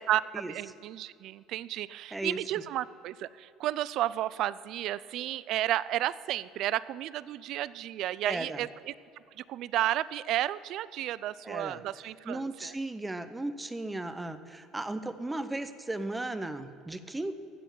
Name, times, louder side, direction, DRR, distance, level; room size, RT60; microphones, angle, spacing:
voice 1, 0.1-8.9 9.5-12.7, right 13 dB, 50° right, 19 dB, 0.4 m, -32 dB
voice 2, 8.2-8.7 11.4-11.8 12.2-17.3, right 2 dB, 10° right, 11 dB, 0.7 m, -35 dB
15.0 x 7.0 x 9.1 m, 2.5 s
cardioid pair, 155°, 0 cm